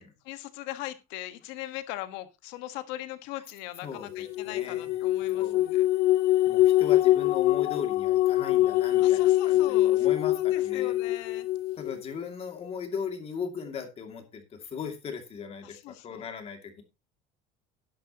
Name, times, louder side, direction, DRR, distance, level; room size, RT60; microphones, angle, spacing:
voice 1, 0.0-5.9 9.0-11.5 15.6-16.3, left 15 dB, 80° left, 11 dB, 1.5 m, -40 dB
voice 2, 3.8-5.0 5.3-5.6 6.5-11.0 11.8-16.8, left 6 dB, 30° left, 5 dB, 2.4 m, -38 dB
sound 1, 4.1-11.9, left 15 dB, 55° left, 0.6 m, -24 dB
12.0 x 10.5 x 2.9 m, 0.25 s
cardioid pair, 155°, 19 cm